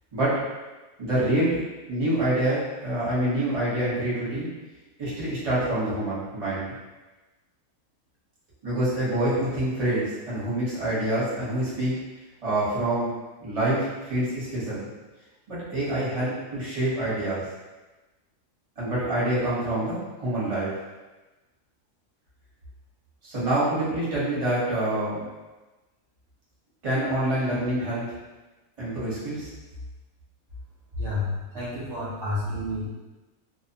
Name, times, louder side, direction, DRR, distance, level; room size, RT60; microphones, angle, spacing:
voice 1, 0.1-0.4 1.0-1.6 1.9-4.5 5.0-6.7 8.6-11.9 12.4-13.1 13.4-14.9 15.5-17.4 18.8-20.7 23.2-25.2 26.8-28.0 28.8-29.5, right 1 dB, 30° right, -9 dB, 0.8 m, -26 dB
voice 2, 31.0-32.9, left 2 dB, 60° right, -10 dB, 0.8 m, -30 dB
2.4 x 2.1 x 2.7 m, 1.2 s
omnidirectional pair, 1.5 m